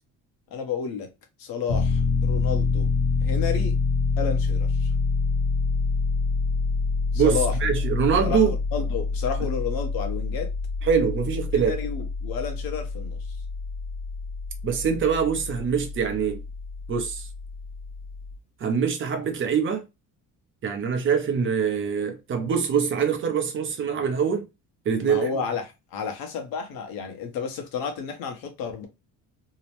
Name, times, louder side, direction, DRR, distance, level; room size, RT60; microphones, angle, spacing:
voice 1, 0.5-1.1 1.4-2.9 3.2-3.8 4.2-4.9 7.1-7.6 8.2-10.5 11.5-13.4 25.0-28.9, left 6 dB, 85° left, 0.9 m, -31 dB
Piano, 1.7-18.4, left 4 dB, 60° left, 0.6 m, -27 dB
voice 2, 7.1-8.5 10.8-11.8 14.6-16.4 16.9-17.3 18.6-19.8 20.6-24.5 24.9-25.3, right 7 dB, 35° right, 0.6 m, -24 dB
2.8 x 2.0 x 2.8 m
cardioid pair, 150°, 34 cm